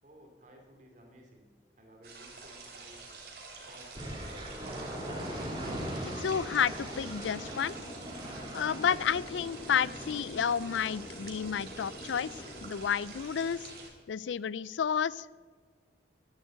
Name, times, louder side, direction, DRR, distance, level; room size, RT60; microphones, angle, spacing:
voice 1, 0.0-1.5 1.8-3.0 3.7-5.1, equal, 45° right, 2 dB, 2.8 m, -55 dB
sound 1, 2.0-13.9, right 4 dB, 60° right, 3.1 m, -48 dB
sound 2, 4.0-13.8, right 1 dB, 25° right, 3.3 m, -42 dB
sound 3, 5.4-12.7, left 1 dB, 35° left, 0.8 m, -47 dB
voice 2, 6.1-7.7 8.5-12.3 12.6-13.7 14.1-15.4, left 7 dB, 90° left, 21 dB, 0.4 m, -31 dB
11.0 x 11.0 x 8.0 m, 1.5 s
head